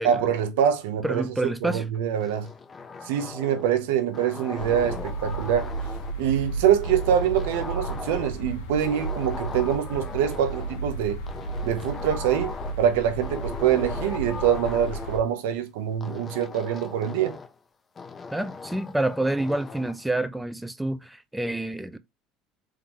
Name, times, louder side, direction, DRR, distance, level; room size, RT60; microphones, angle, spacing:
voice 1, 0.0-1.2 1.6-2.5 3.1-5.7 6.2-11.2 11.6-17.4, right 9 dB, 85° right, 0.8 m, -25 dB
voice 2, 1.0-1.9 18.3-22.0, right 1 dB, 5° right, 0.6 m, -28 dB
sound 1, 2.2-3.8 4.1-6.2 6.8-8.5 8.8-10.8 11.3-12.8 13.2-15.2 16.0-17.5 18.0-20.0, left 4 dB, 30° left, 0.9 m, -39 dB
sound 2, 4.6-15.2, right 2 dB, 85° left, 1.2 m, -33 dB
3.7 x 3.5 x 2.9 m
supercardioid pair, 90°, 0 cm